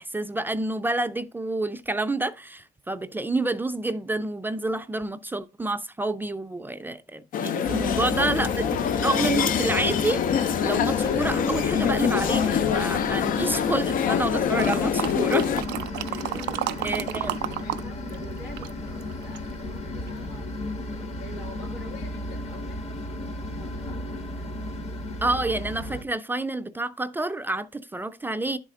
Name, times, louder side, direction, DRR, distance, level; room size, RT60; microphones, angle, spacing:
voice 1, 0.0-15.5 16.1-16.2 16.8-17.3 25.2-28.6, right 2 dB, 10° right, 0.4 m, -28 dB
sound 1, 7.3-15.6, left 9 dB, 55° left, 0.5 m, -25 dB
voice 2, 7.6-9.1 16.2-20.6 20.9-24.0 24.3-24.7, left 2 dB, 85° left, 2.3 m, -46 dB
sound 2, 7.6-26.0, left 2 dB, 40° left, 1.2 m, -33 dB
sound 3, 14.6-17.8 18.1-19.5 20.1-20.2, right 15 dB, 80° right, 0.5 m, -31 dB
10.5 x 4.2 x 3.6 m
cardioid pair, 110°, 17 cm